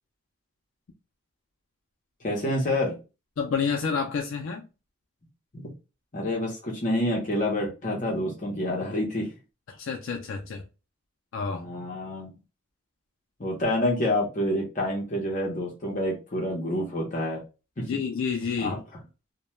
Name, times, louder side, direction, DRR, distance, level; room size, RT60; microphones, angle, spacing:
voice 1, 2.2-2.9 5.5-5.7 6.1-9.3 11.5-12.3 13.4-17.4 17.8-17.9 18.6-18.8, left 1 dB, 40° left, 0.7 m, -28 dB
voice 2, 3.4-4.6 9.7-10.6 11.3-11.6 17.8-18.8, left 5 dB, 70° left, 0.4 m, -29 dB
2.1 x 2.1 x 2.9 m
head